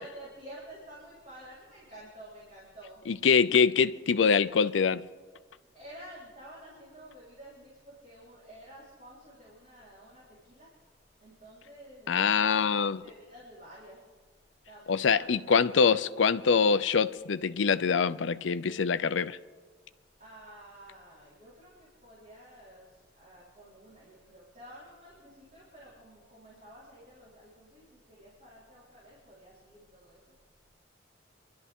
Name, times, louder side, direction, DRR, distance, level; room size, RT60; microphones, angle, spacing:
voice 1, 0.0-3.0 5.7-10.7 11.2-12.5 12.9-14.0 14.7-15.4 20.2-30.2, right 1 dB, 40° right, 4.1 m, -51 dB
voice 2, 3.1-5.0 12.1-13.0 14.9-19.4, left 6 dB, 85° left, 0.5 m, -24 dB
28.5 x 12.0 x 3.6 m
head